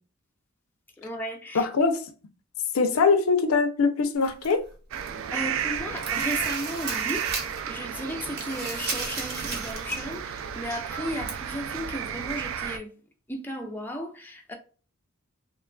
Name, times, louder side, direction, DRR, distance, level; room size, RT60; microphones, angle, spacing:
voice 1, 1.0-1.7 5.3-7.3 7.7-13.0 13.3-14.5, equal, 10° left, 0.4 m, -35 dB
voice 2, 1.5-2.0 2.7-4.6, left 4 dB, 85° left, 0.5 m, -22 dB
sound 1, 4.2-5.2 5.6-7.7 8.0-10.1 10.4-10.5 11.3-11.4, right 3 dB, 50° right, 0.8 m, -35 dB
sound 2, 4.9-12.8, right 8 dB, 70° right, 0.3 m, -32 dB
3.0 x 2.3 x 2.2 m
head